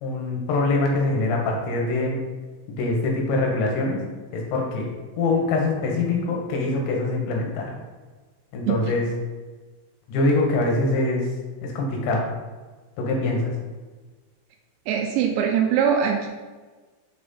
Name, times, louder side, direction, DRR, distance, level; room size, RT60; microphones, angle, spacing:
voice 1, 0.0-2.2 2.7-4.0 4.3-4.9 5.2-7.7 8.5-9.1 10.1-11.3 11.6-12.2 13.0-13.5, left 2 dB, 75° left, 0 dB, 2.9 m, -23 dB
voice 2, 14.9-16.3, right 8 dB, 90° right, 2 dB, 2.5 m, -22 dB
6.7 x 3.9 x 3.7 m, 1.3 s
omnidirectional pair, 5.6 m